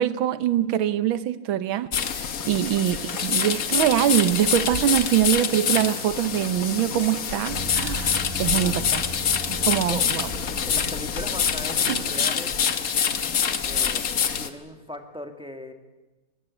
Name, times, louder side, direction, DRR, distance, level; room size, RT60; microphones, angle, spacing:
voice 1, 0.0-9.0 9.5-10.3 11.9-12.3, right 11 dB, 75° right, 1.7 m, -24 dB
sound 1, 1.9-14.5, left 7 dB, 50° left, 1.5 m, -26 dB
sound 2, 2.6-7.6, right 1 dB, 60° right, 4.1 m, -48 dB
sound 3, 7.5-13.9, equal, 35° right, 2.3 m, -38 dB
voice 2, 8.3-8.9 9.5-10.0 10.7-12.5 13.6-14.1 14.4-15.7, left 1 dB, 5° right, 1.8 m, -39 dB
23.5 x 20.5 x 8.4 m
omnidirectional pair, 2.2 m